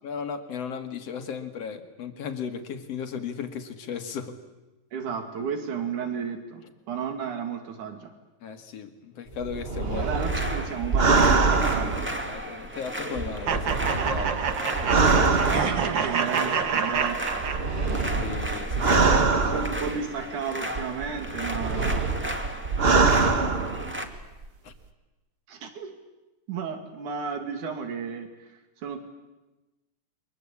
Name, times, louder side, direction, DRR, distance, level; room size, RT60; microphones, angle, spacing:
voice 1, 0.0-4.4 8.4-10.1 12.3-14.4 17.9-19.7 24.6-24.7, left 6 dB, 55° left, 8 dB, 2.9 m, -36 dB
voice 2, 4.9-8.1 10.0-12.0 15.4-17.2 19.3-22.1 25.5-25.9 26.5-28.3 28.8-29.0, right 6 dB, 85° right, 6 dB, 4.0 m, -33 dB
sound 1, 9.4-12.7 13.2-16.1 17.0-20.2 20.8-24.2 24.4-24.5, right 4 dB, 65° right, 0.5 m, -24 dB
sound 2, 9.9-24.1, equal, 5° right, 1.6 m, -35 dB
sound 3, 13.5-18.1, right 6 dB, 45° right, 1.7 m, -28 dB
29.0 x 24.0 x 8.5 m, 1.1 s
omnidirectional pair, 3.4 m